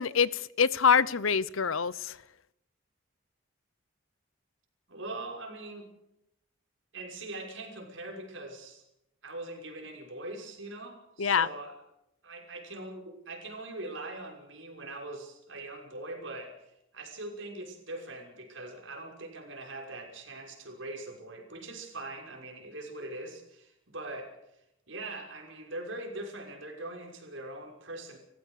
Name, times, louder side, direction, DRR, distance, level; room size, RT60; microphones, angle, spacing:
voice 1, 0.0-2.2 11.2-11.5, left 6 dB, 75° left, 19 dB, 0.8 m, -25 dB
voice 2, 4.9-5.9 6.9-8.8 9.2-11.7 12.2-24.3 24.9-28.2, right 2 dB, 65° right, 2 dB, 6.1 m, -42 dB
30.0 x 15.5 x 6.6 m, 0.83 s
head